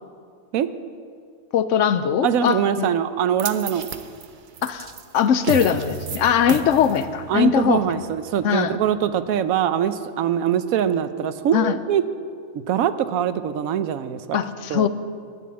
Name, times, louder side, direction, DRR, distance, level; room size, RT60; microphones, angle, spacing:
voice 1, 1.5-2.9 4.6-8.0 8.4-8.8 11.5-11.8 14.3-14.9, left 8 dB, 70° left, 12 dB, 0.9 m, -21 dB
voice 2, 2.2-3.9 7.3-12.0 12.5-14.4 14.7-14.9, right 9 dB, 85° right, 12 dB, 1.1 m, -23 dB
sound 1, 3.4-9.7, right 7 dB, 50° right, 0.6 m, -34 dB
11.0 x 9.2 x 8.5 m, 2.2 s
omnidirectional pair, 1.4 m